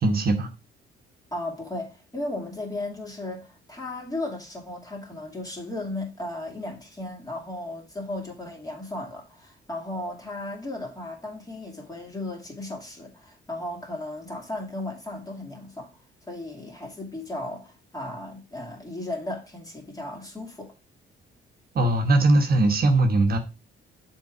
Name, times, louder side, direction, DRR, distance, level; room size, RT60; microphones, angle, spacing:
voice 1, 0.0-0.5 21.7-23.4, right 2 dB, 50° right, 1.2 m, -20 dB
voice 2, 1.3-15.9 16.3-20.7, left 1 dB, 20° left, 2.4 m, -35 dB
7.0 x 3.9 x 4.8 m
cardioid pair, 90°, 20 cm